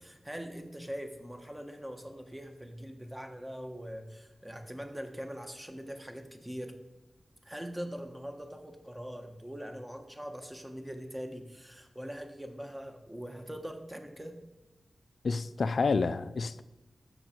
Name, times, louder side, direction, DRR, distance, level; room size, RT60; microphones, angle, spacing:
voice 1, 0.0-6.8 7.4-14.4, equal, 15° right, 1.3 m, -42 dB
voice 2, 15.2-16.6, left 4 dB, 70° left, 0.4 m, -29 dB
14.0 x 6.2 x 4.5 m
wide cardioid pair, 80°, 0 cm